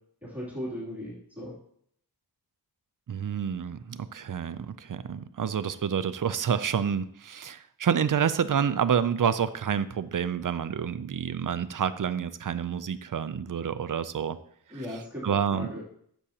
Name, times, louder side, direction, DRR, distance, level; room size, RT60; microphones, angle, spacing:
voice 1, 0.2-1.5 14.7-15.8, equal, 5° right, -8 dB, 2.9 m, -37 dB
voice 2, 3.1-14.4 14.7-14.8 15.2-15.7, right 7 dB, 50° right, 14 dB, 0.5 m, -28 dB
9.9 x 7.2 x 2.9 m, 0.66 s
wide cardioid pair, 75°, 41 cm